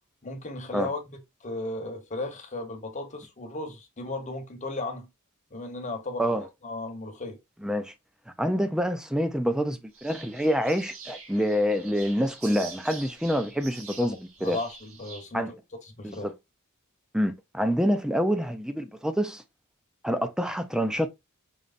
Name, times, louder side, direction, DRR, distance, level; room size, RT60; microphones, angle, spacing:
voice 1, 0.2-5.1 5.5-7.4 14.4-16.3, left 2 dB, 35° left, 1.1 m, -36 dB
voice 2, 7.6-7.9 8.4-14.6 15.3-15.5 16.0-16.3 17.1-19.4 20.0-21.1, equal, 5° right, 0.5 m, -27 dB
sound 1, 9.9-15.3, right 4 dB, 75° right, 2.0 m, -45 dB
5.3 x 3.1 x 2.5 m
head